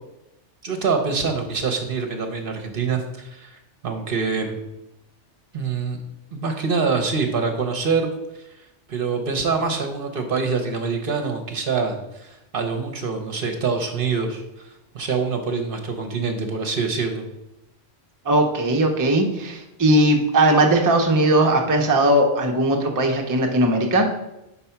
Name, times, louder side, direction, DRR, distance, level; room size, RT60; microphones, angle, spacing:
voice 1, 0.6-4.6 5.5-6.0 6.3-8.1 8.9-14.7 14.9-17.2, right 5 dB, 55° right, 4 dB, 0.9 m, -25 dB
voice 2, 18.2-24.1, right 1 dB, 20° right, 2 dB, 0.6 m, -18 dB
5.4 x 4.3 x 5.7 m, 0.92 s
omnidirectional pair, 1.2 m